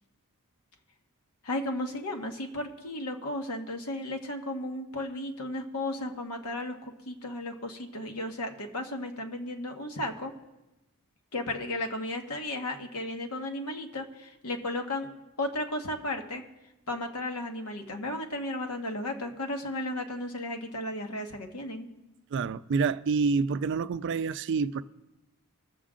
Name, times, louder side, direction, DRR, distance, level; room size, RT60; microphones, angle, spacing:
voice 1, 1.4-10.3 11.3-15.1 15.4-16.4 16.9-21.9, left 1 dB, 80° left, 1.4 m, -34 dB
voice 2, 22.3-24.8, right 5 dB, 55° right, 0.3 m, -27 dB
21.5 x 7.3 x 3.8 m
head